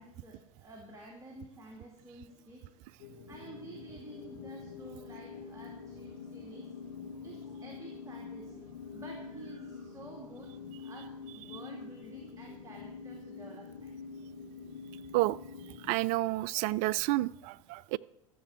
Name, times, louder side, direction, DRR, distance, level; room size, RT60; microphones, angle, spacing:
voice 1, 0.0-2.6 3.3-6.7 7.1-10.6 10.8-13.9, right 2 dB, 15° right, 0 dB, 2.5 m, -50 dB
sound 1, 3.0-16.0, left 5 dB, 65° left, 1.2 m, -46 dB
voice 2, 15.9-18.0, right 18 dB, 45° right, 20 dB, 0.4 m, -30 dB
13.0 x 7.0 x 7.8 m, 0.81 s
figure-of-eight pair, 80°, 18 cm